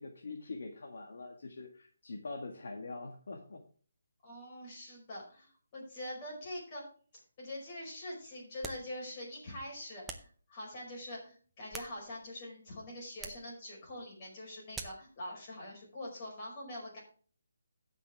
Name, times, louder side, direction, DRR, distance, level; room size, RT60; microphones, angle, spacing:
voice 1, 0.0-3.6, left 3 dB, 60° left, 2 dB, 1.6 m, -44 dB
voice 2, 4.2-6.8 7.4-17.0, left 1 dB, 25° left, -3 dB, 5.0 m, -44 dB
sound 1, 8.6-8.9 10.1-10.4 11.4-12.3 13.2-13.5 14.7-15.1, right 4 dB, 5° right, 0.6 m, -45 dB
15.5 x 5.9 x 3.5 m, 0.43 s
hypercardioid pair, 170°, 0 cm